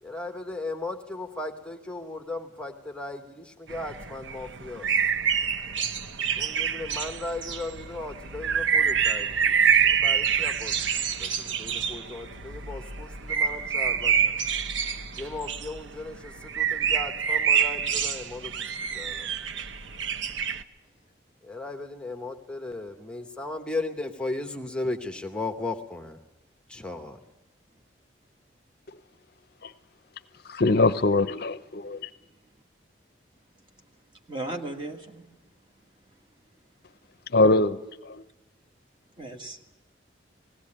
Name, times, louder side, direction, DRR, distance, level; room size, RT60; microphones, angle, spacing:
voice 1, 0.0-5.1 6.4-14.4 15.1-19.3 21.4-26.2 26.7-27.2, left 2 dB, 5° left, 0.9 m, -36 dB
sound 1, 3.7-20.6, right 7 dB, 80° right, 0.8 m, -27 dB
voice 2, 30.4-32.1 37.3-38.2, left 2 dB, 55° left, 0.6 m, -23 dB
voice 3, 34.3-35.3 39.2-39.8, right 2 dB, 25° right, 1.7 m, -36 dB
19.0 x 17.0 x 8.6 m
head